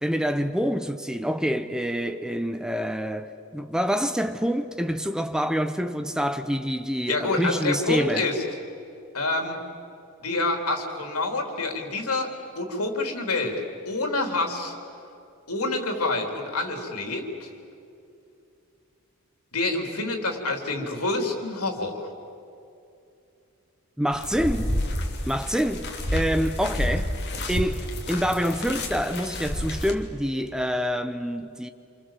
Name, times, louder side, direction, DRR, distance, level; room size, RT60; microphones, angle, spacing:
voice 1, 0.0-8.3 24.0-24.7 25.3-27.1 27.5-31.7, equal, 5° right, 0.8 m, -26 dB
voice 2, 7.1-8.4 9.1-9.6 10.2-14.7 15.5-17.5 19.5-22.1, left 2 dB, 90° left, 3.7 m, -27 dB
sound 1, 24.1-29.9, left 1 dB, 50° left, 2.7 m, -30 dB
28.0 x 28.0 x 7.6 m
head